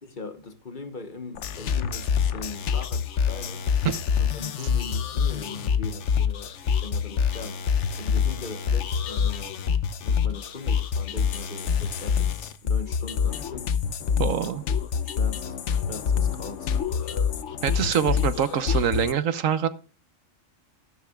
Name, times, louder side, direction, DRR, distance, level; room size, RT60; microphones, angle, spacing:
voice 1, 0.0-3.7 4.2-9.6 10.0-14.0 15.0-17.4, left 3 dB, 40° left, 1.3 m, -40 dB
sound 1, 1.3-19.1, left 7 dB, 70° left, 1.1 m, -26 dB
voice 2, 14.2-14.6 17.6-19.7, right 8 dB, 85° right, 1.3 m, -24 dB
13.5 x 12.5 x 2.3 m
omnidirectional pair, 1.3 m